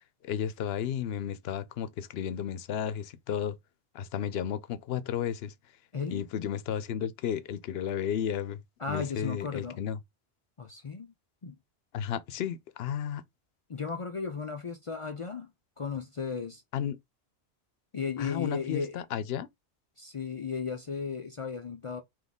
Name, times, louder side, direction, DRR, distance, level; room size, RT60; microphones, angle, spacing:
voice 1, 0.2-3.5 3.9-5.5 6.1-8.6 8.9-10.0 11.9-13.2 16.7-17.0 18.2-19.5, left 9 dB, 70° left, 0.8 m, -33 dB
voice 2, 5.9-6.2 8.8-9.8 10.6-11.1 11.4-11.6 13.7-15.5 15.8-16.6 17.9-19.0 20.0-22.0, left 5 dB, 50° left, 0.4 m, -35 dB
4.0 x 2.9 x 3.5 m
omnidirectional pair, 1.1 m